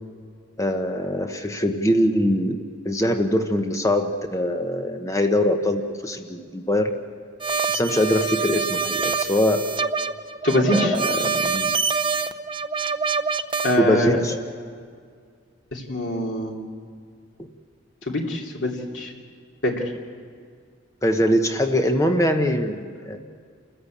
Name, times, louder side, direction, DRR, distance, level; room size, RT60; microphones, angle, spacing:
voice 1, 0.6-2.6 2.8-6.9 7.7-9.7 10.7-11.7 13.7-14.3 21.0-23.2, left 1 dB, 15° left, 5 dB, 1.1 m, -22 dB
sound 1, 7.4-13.8, right 5 dB, 25° right, 0.6 m, -25 dB
voice 2, 10.4-11.0 13.6-14.2 15.7-16.5 18.1-19.1 19.6-19.7, left 1 dB, 75° left, 0 dB, 3.0 m, -23 dB
28.5 x 14.5 x 8.6 m, 2.1 s
head